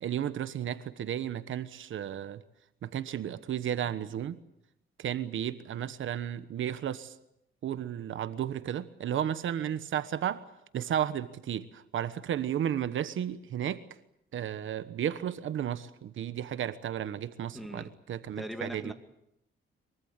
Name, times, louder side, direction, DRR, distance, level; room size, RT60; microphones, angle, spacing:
voice 1, 0.0-2.4 2.8-4.4 5.0-7.1 7.6-10.4 10.7-13.8 14.3-18.9, right 10 dB, 70° right, 12 dB, 1.2 m, -33 dB
voice 2, 17.5-17.9 18.4-18.9, equal, ahead, 5 dB, 2.2 m, -39 dB
23.5 x 23.5 x 8.2 m, 0.80 s
wide cardioid pair, 150°, 21 cm